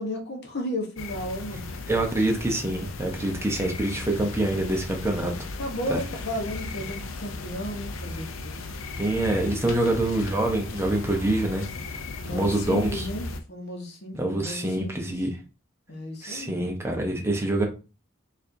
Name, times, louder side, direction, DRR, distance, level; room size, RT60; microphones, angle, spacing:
voice 1, 0.0-1.7 5.6-8.6 12.2-15.1 15.9-16.7, left 1 dB, 55° left, 0.9 m, -34 dB
sound 1, 1.0-13.4, left 3 dB, 70° left, 0.5 m, -36 dB
voice 2, 1.9-5.3 5.9-6.0 9.0-11.6 12.3-13.1 14.1-15.3 16.2-17.7, right 1 dB, 15° right, 0.6 m, -25 dB
4.7 x 2.5 x 2.6 m
head